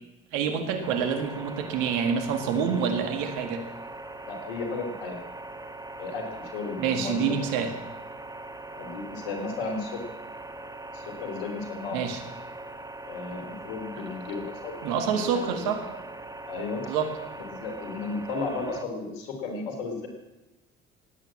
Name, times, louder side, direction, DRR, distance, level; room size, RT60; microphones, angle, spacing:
voice 1, 0.3-3.6 6.8-7.7 11.9-12.2 14.8-15.8 16.9-17.1, right 6 dB, 80° right, 6 dB, 2.1 m, -27 dB
sound 1, 0.8-18.8, right 2 dB, 10° right, 1.4 m, -41 dB
voice 2, 4.3-5.2 6.0-7.5 8.8-10.0 10.9-12.0 13.0-14.7 15.1-15.7 16.5-16.9 17.4-20.1, left 3 dB, 85° left, 4 dB, 3.1 m, -34 dB
18.0 x 9.1 x 7.4 m, 1.1 s
hypercardioid pair, 55°, 30 cm